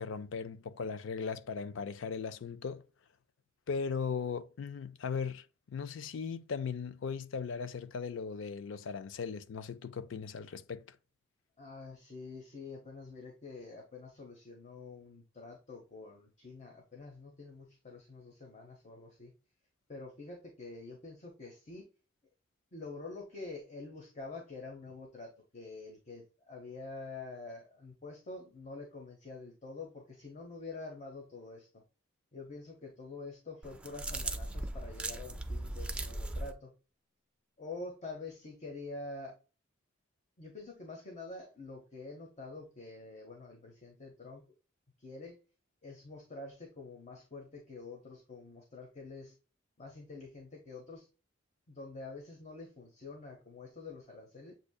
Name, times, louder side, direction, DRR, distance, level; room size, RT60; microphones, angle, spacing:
voice 1, 0.0-2.8 3.7-11.0, left 5 dB, 70° left, 0.4 m, -38 dB
voice 2, 11.6-19.3 19.9-21.9 22.7-31.8 32.3-36.7 37.6-39.3 40.4-44.4 45.0-45.4 45.8-49.3 49.8-51.1 51.7-54.5, left 3 dB, 35° left, 0.9 m, -47 dB
sound 1, 33.6-36.5, right 2 dB, 5° right, 0.4 m, -38 dB
7.7 x 2.7 x 2.3 m
head